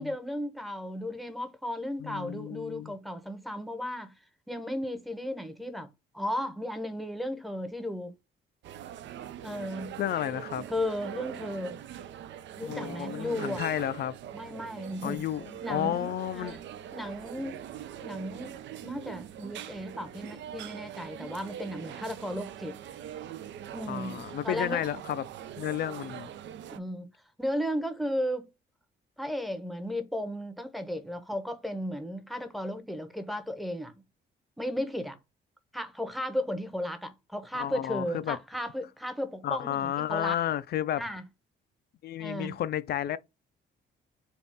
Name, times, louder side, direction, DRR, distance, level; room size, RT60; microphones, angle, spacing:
voice 1, 0.0-4.1 4.5-5.9 6.1-8.1 9.4-10.0 10.7-11.8 12.6-13.6 14.3-15.2 15.6-16.6 16.9-17.6 18.0-18.5 18.8-22.8 23.7-24.8 26.7-27.1 27.4-28.5 29.2-33.9 34.6-35.2 35.7-40.4 41.0-41.2 42.2-42.6, equal, ahead, 0.7 m, -35 dB
voice 2, 2.0-2.9 10.0-10.6 12.6-14.1 15.0-16.6 23.9-25.2 25.6-26.3 37.5-38.4 39.4-41.0 42.0-43.2, left 11 dB, 55° left, 0.4 m, -32 dB
sound 1, 8.6-26.8, right 10 dB, 65° right, 0.4 m, -42 dB
3.5 x 2.3 x 4.0 m
cardioid pair, 90°, 20 cm